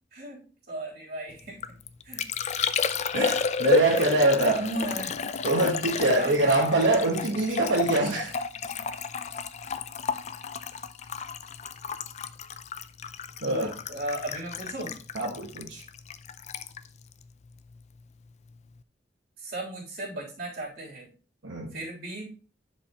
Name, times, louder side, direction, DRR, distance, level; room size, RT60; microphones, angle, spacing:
voice 1, 0.1-1.6 2.0-2.3 4.5-5.2 6.1-6.8 13.4-14.9 19.4-21.1 21.7-22.3, right 1 dB, 55° right, 3.3 m, -36 dB
Liquid, 1.4-18.0 18.3-18.8, left 5 dB, 35° left, 0.4 m, -32 dB
voice 2, 3.1-4.6 5.4-8.3 13.4-13.7 15.1-15.8 21.4-21.7, right 2 dB, 85° right, 1.2 m, -24 dB
9.9 x 5.2 x 2.9 m
head